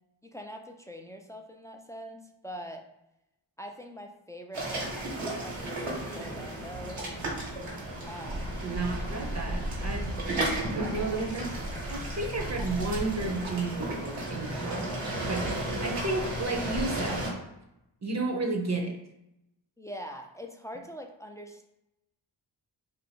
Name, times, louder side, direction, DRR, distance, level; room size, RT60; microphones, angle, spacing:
voice 1, 0.2-2.8 3.6-4.9 5.4-7.0 8.0-8.6 19.8-21.7, equal, 5° left, 3 dB, 0.4 m, -43 dB
sound 1, 4.5-17.3, right 1 dB, 85° right, 1.3 m, -33 dB
voice 2, 8.6-10.1 10.6-11.5 11.9-17.3 18.0-19.0, right 3 dB, 35° right, 3 dB, 0.7 m, -32 dB
2.6 x 2.6 x 4.3 m, 0.88 s
cardioid pair, 40°, 47 cm